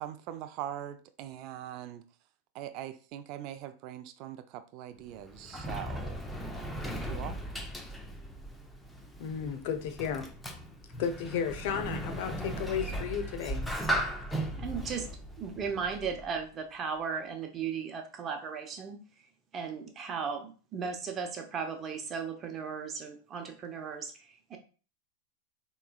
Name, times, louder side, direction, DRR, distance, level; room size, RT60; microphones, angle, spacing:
voice 1, 0.0-2.0 2.5-6.2 6.8-7.4, right 11 dB, 50° right, 0.4 m, -41 dB
Sliding door, 5.0-16.4, right 1 dB, 5° left, 0.6 m, -37 dB
voice 2, 9.2-10.3 11.0-13.7, left 7 dB, 65° left, 0.7 m, -33 dB
voice 3, 14.6-15.1 15.4-19.0 19.5-24.6, right 6 dB, 30° right, 0.8 m, -36 dB
4.4 x 3.0 x 2.3 m
hypercardioid pair, 115°, 0 cm